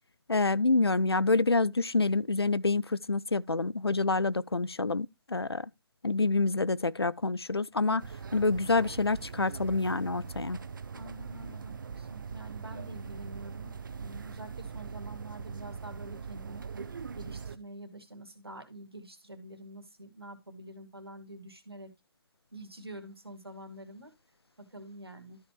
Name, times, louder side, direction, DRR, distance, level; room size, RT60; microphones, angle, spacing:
voice 1, 0.3-5.7 6.0-8.0 8.3-10.6, left 3 dB, 85° left, 0.5 m, -27 dB
sound 1, 8.0-17.6, right 6 dB, 55° right, 0.9 m, -41 dB
voice 2, 10.9-16.6 17.2-21.9 22.5-24.1 24.6-25.4, right 1 dB, 80° right, 2.4 m, -47 dB
13.0 x 5.6 x 3.1 m
figure-of-eight pair, 135°, 13 cm